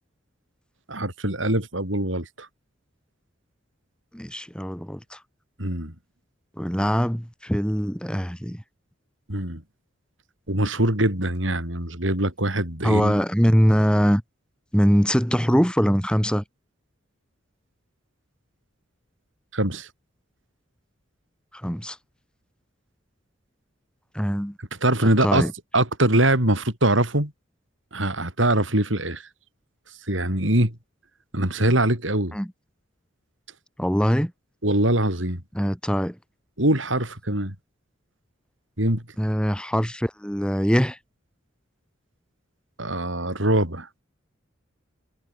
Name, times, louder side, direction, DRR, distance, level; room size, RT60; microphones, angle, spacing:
voice 1, 0.9-2.5 5.6-5.9 9.3-9.6 10.5-13.1 19.5-19.9 24.8-27.3 27.9-29.2 30.1-30.8 31.3-32.3 34.6-35.4 36.6-37.5 38.8-39.0 42.8-43.9, right 1 dB, 80° right, 7.9 m, -23 dB
voice 2, 4.1-5.2 6.6-8.6 12.8-14.2 14.7-16.4 21.5-22.0 24.1-24.6 25.2-25.5 32.3-32.5 33.8-34.3 35.5-36.2 39.2-41.0, equal, 5° left, 6.9 m, -22 dB
head